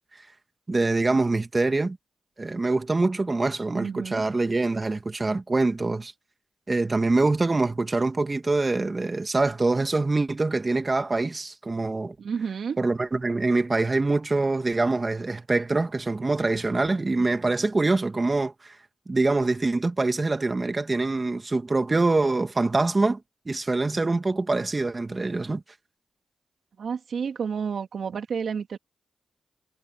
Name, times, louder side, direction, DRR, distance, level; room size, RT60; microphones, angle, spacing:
voice 1, 0.7-2.0 2.4-6.1 6.7-12.1 12.8-18.8 19.1-23.2 23.5-25.6, right 3 dB, 35° right, 2.3 m, -24 dB
voice 2, 3.7-4.3 12.2-12.8 26.8-28.8, right 6 dB, 70° right, 2.4 m, -30 dB
cardioid pair, 50°, 0 cm